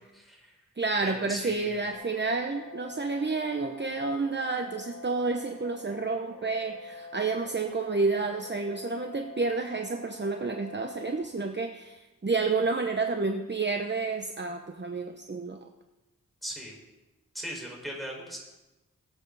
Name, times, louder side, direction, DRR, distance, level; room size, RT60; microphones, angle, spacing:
voice 1, 0.1-0.5 1.0-1.8 16.4-16.7 17.3-18.4, equal, ahead, -2 dB, 5.1 m, -39 dB
voice 2, 0.8-15.6, right 3 dB, 35° right, 4 dB, 0.9 m, -30 dB
sound 1, 1.9-11.2, left 3 dB, 65° left, 2.7 m, -45 dB
22.5 x 8.3 x 4.1 m, 1.0 s
wide cardioid pair, 65°, 33 cm